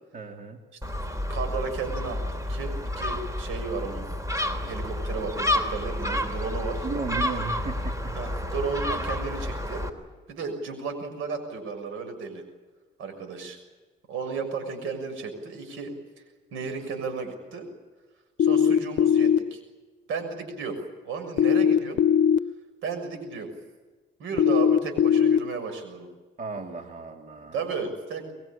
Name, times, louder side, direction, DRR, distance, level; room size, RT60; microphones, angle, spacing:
voice 1, 0.1-0.6 6.8-8.2 26.4-27.6, right 4 dB, 40° right, 4 dB, 3.1 m, -35 dB
Gull seagull, 0.8-9.9, left 1 dB, 15° right, 3.5 m, -30 dB
voice 2, 1.3-4.1 4.4-6.9 8.1-9.9 10.3-12.4 13.0-13.6 14.1-15.9 16.5-17.7 18.4-19.6 20.1-20.8 21.0-22.0 22.8-23.5 24.2-26.1 27.5-28.3, right 4 dB, 85° right, 6 dB, 6.7 m, -34 dB
sound 1, 18.4-19.4 21.4-22.4 24.4-25.4, left 8 dB, 65° left, 0.8 m, -19 dB
23.5 x 22.0 x 8.9 m, 1.3 s
cardioid pair, 90°, 20 cm